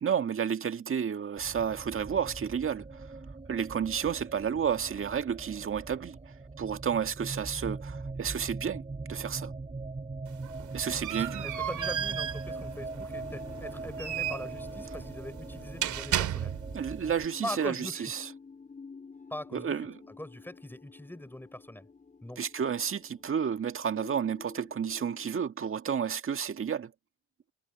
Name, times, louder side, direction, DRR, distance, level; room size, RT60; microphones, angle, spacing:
voice 1, 0.0-3.0 3.5-6.2 6.6-9.5 10.7-11.5 16.7-18.3 19.5-20.0 22.4-26.9, right 7 dB, 45° right, 1.9 m, -31 dB
sound 1, 1.4-17.3, right 3 dB, 20° right, 5.3 m, -41 dB
sound 2, 10.3-16.9, right 11 dB, 75° right, 2.4 m, -35 dB
voice 2, 11.4-16.6 17.4-18.1 19.3-19.8 20.1-21.9 22.2-22.4, left 1 dB, 5° left, 6.4 m, -41 dB
sound 3, 12.5-25.4, left 4 dB, 25° left, 3.9 m, -51 dB
cardioid pair, 90°, 30 cm